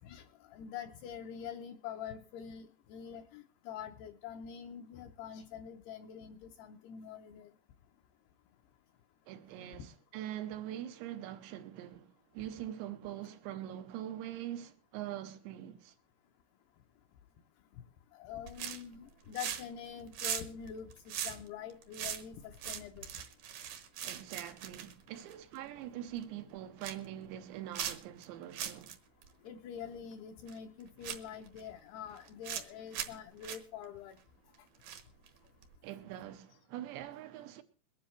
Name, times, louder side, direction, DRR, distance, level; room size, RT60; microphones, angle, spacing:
voice 1, 0.0-7.5 18.1-23.1 29.4-34.2, left 8 dB, 75° left, 2.5 m, -45 dB
voice 2, 9.3-15.9 24.0-29.0 35.8-37.6, right 12 dB, 90° right, 3.1 m, -43 dB
sound 1, 18.5-19.0 19.3-19.8 20.1-25.7 26.1-26.2 26.6-27.1 27.7-28.2 28.5-29.0 29.2-29.3 30.5-30.6 31.0-31.6 32.2-32.7 32.9-33.2 33.4-33.6 34.8-35.3 35.6-35.8, right 9 dB, 70° right, 1.9 m, -40 dB
22.5 x 10.0 x 3.2 m
omnidirectional pair, 5.1 m